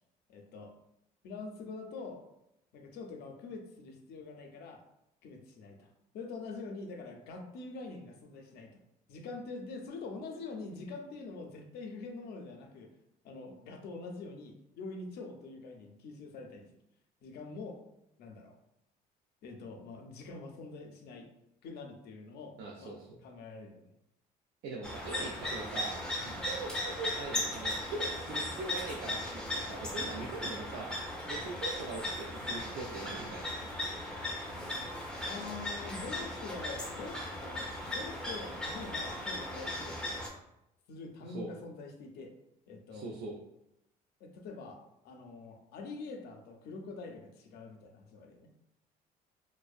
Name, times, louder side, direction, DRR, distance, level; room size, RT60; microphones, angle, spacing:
voice 1, 0.3-0.7 1.2-2.2 2.7-4.8 5.2-8.8 9.1-12.9 13.2-16.7 17.2-17.8 18.2-18.6 19.4-21.3 21.6-23.0 23.2-23.9 26.2-26.5 30.0-30.2 35.2-40.1 40.9-42.3 42.7-43.1 44.2-48.5, left 3 dB, 70° left, 3 dB, 0.5 m, -45 dB
voice 2, 22.6-23.2 24.6-26.0 26.2-33.5 41.3-41.5 42.9-43.4, right 3 dB, 75° right, -2 dB, 0.4 m, -42 dB
sound 1, 24.8-40.3, left 1 dB, 5° left, 0.5 m, -37 dB
2.5 x 2.1 x 2.3 m, 0.83 s
cardioid pair, 110°, 17 cm